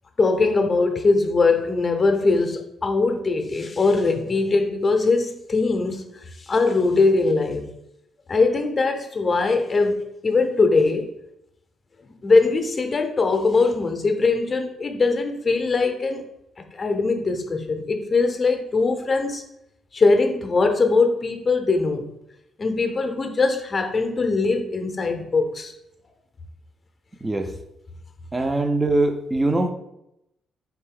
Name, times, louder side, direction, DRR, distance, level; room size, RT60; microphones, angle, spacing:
voice 1, 0.2-7.7 8.3-11.1 12.0-16.2 16.6-19.4 19.9-22.1 22.6-25.7, left 3 dB, 30° left, 6 dB, 0.6 m, -21 dB
voice 2, 28.3-29.7, right 2 dB, 20° right, 6 dB, 0.5 m, -22 dB
4.2 x 2.6 x 3.7 m, 0.82 s
cardioid pair, 90°, 0 cm